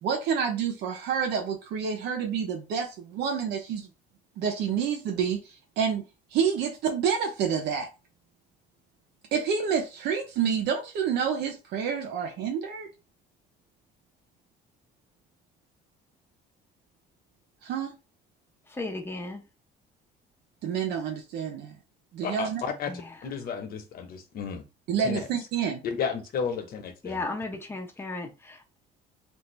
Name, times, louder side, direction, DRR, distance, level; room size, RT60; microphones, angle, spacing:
voice 1, 0.0-3.9 4.4-6.0 6.3-7.9 9.3-12.9 17.6-17.9 20.6-21.8 22.1-22.6 24.9-25.8, right 7 dB, 80° right, 0.8 m, -28 dB
voice 2, 18.7-19.4 22.9-23.1 27.0-28.8, left 2 dB, 15° left, 0.9 m, -35 dB
voice 3, 22.2-22.9 23.2-24.6 25.0-25.2 25.8-27.3, left 6 dB, 60° left, 1.1 m, -32 dB
3.4 x 2.7 x 3.3 m
cardioid pair, 110°, 17 cm